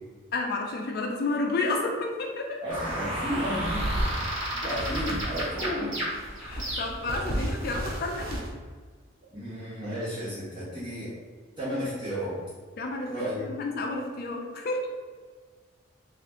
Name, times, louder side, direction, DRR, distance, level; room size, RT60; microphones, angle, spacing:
voice 1, 0.3-2.6 4.6-4.8 6.4-8.4 12.8-13.1 13.4-14.9, left 2 dB, 50° left, 2 dB, 0.4 m, -31 dB
voice 2, 2.6-4.0 4.6-6.0 9.3-11.1 11.6-12.4 13.1-13.5, equal, 25° right, -13 dB, 1.0 m, -33 dB
sound 1, 2.7-7.2, right 1 dB, 85° right, 1.2 m, -32 dB
sound 2, 3.5-5.6 6.0-8.5, right 1 dB, 50° right, 0.5 m, -33 dB
2.7 x 2.4 x 3.4 m, 1.5 s
head